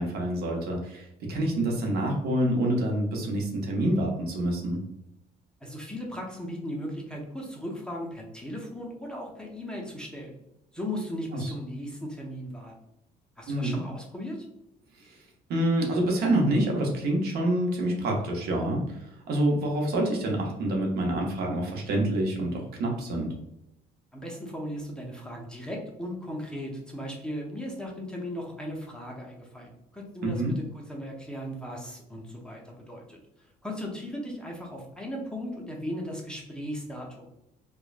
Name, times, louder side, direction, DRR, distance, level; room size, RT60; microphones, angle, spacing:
voice 1, 0.0-4.8 11.3-11.5 13.5-13.8 15.0-15.2 15.5-23.3 30.2-30.5, right 1 dB, 70° right, 0 dB, 0.8 m, -27 dB
voice 2, 5.6-10.4 10.7-12.7 13.4-14.5 24.1-33.2 33.6-37.3, equal, 5° left, -1 dB, 0.6 m, -37 dB
3.0 x 2.2 x 2.4 m, 0.85 s
cardioid pair, 110°, 17 cm